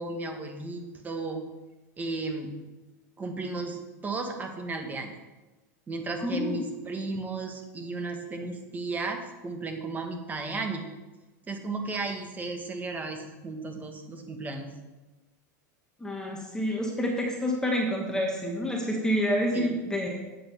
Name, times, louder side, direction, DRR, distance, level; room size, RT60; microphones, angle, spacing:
voice 1, 0.0-1.4 2.0-2.5 3.2-5.1 5.9-10.8 11.5-14.7 19.5-19.7, right 3 dB, 20° right, 4 dB, 1.4 m, -34 dB
voice 2, 6.2-6.6 16.0-20.2, equal, 5° left, 0 dB, 1.4 m, -28 dB
8.0 x 7.4 x 4.6 m, 1.1 s
supercardioid pair, 120°, 9 cm